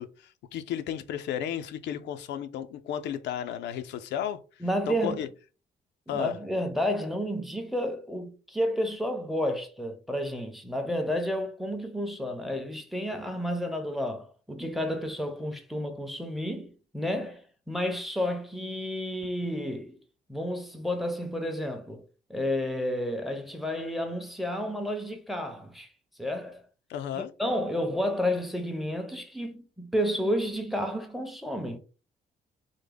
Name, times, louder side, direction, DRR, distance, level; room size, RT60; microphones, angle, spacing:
voice 1, 0.0-4.4 4.9-5.3 6.1-6.4 26.9-27.3, left 9 dB, 90° left, 0.4 m, -33 dB
voice 2, 4.6-5.2 6.1-20.0 20.3-22.0 22.3-25.9 26.2-26.6 27.2-31.8, equal, ahead, 0.5 m, -31 dB
3.5 x 2.0 x 3.3 m
cardioid pair, 135°, 18 cm